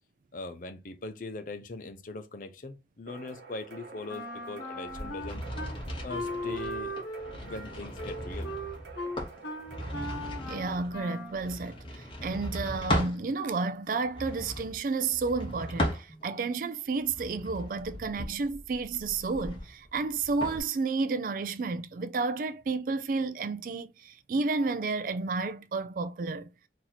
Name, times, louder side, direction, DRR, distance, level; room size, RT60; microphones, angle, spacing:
voice 1, 0.3-5.4 6.0-6.9 7.4-8.5, left 3 dB, 50° left, 0.5 m, -40 dB
sound 1, 3.1-9.9, right 4 dB, 70° right, 0.8 m, -49 dB
Wind instrument woodwind instrument, 4.1-5.7 6.1-11.4, equal, 80° left, 1.0 m, -38 dB
sound 2, 4.9-13.2 14.0-16.5 17.0-20.6, equal, 30° left, 0.9 m, -37 dB
voice 2, 10.5-26.5, right 4 dB, 50° right, 0.3 m, -31 dB
3.0 x 2.7 x 3.9 m
head